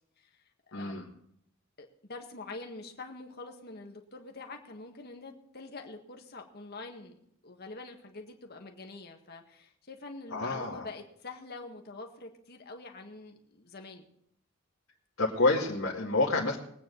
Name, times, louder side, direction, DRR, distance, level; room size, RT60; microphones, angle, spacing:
voice 1, 0.2-1.1 1.8-7.2 7.4-14.1, left 3 dB, 50° left, 3 dB, 1.8 m, -45 dB
voice 2, 0.7-1.0 10.3-10.9 15.2-16.6, left 2 dB, 85° left, -5 dB, 2.3 m, -28 dB
22.0 x 9.1 x 4.0 m, 0.71 s
head